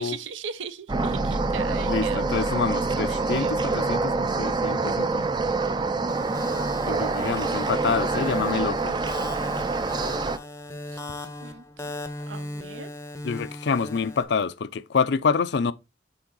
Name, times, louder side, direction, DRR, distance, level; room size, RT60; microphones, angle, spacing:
voice 1, 0.0-2.2 3.1-3.6 6.8-7.3 7.6-7.8 8.3-9.1 10.9-11.0 11.4-11.6 12.3-12.9, right 5 dB, 80° right, 0.7 m, -39 dB
sound 1, 0.9-10.4, right 3 dB, 25° right, 0.4 m, -26 dB
voice 2, 1.9-5.1 6.9-9.0 13.2-15.7, left 5 dB, 60° left, 0.4 m, -27 dB
sound 2, 6.1-14.2, left 2 dB, 15° left, 0.6 m, -38 dB
7.2 x 3.7 x 3.8 m
head